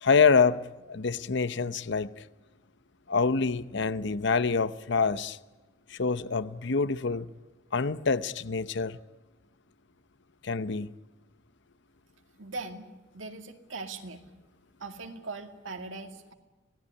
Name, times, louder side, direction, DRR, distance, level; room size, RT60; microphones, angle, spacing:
voice 1, 0.0-2.3 3.1-5.4 5.9-7.3 7.7-9.0 10.4-10.9, left 5 dB, 65° left, 0.8 m, -26 dB
voice 2, 12.4-12.9 13.1-14.2 14.8-16.3, right 3 dB, 85° right, 2.2 m, -40 dB
25.5 x 18.0 x 9.9 m
head